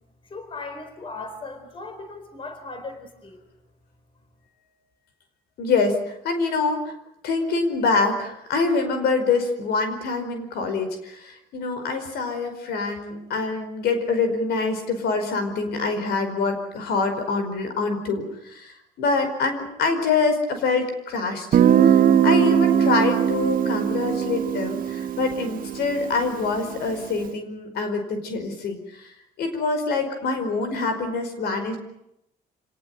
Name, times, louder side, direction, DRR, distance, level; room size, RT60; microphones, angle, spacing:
voice 1, 0.2-3.4, left 3 dB, 30° left, 8 dB, 4.1 m, -37 dB
voice 2, 5.6-6.9 7.2-31.8, left 4 dB, 70° left, 7 dB, 5.1 m, -25 dB
Guitar, 21.5-27.1, right 9 dB, 55° right, 1.7 m, -20 dB
27.0 x 18.5 x 9.1 m, 0.82 s
cardioid pair, 110°, 17 cm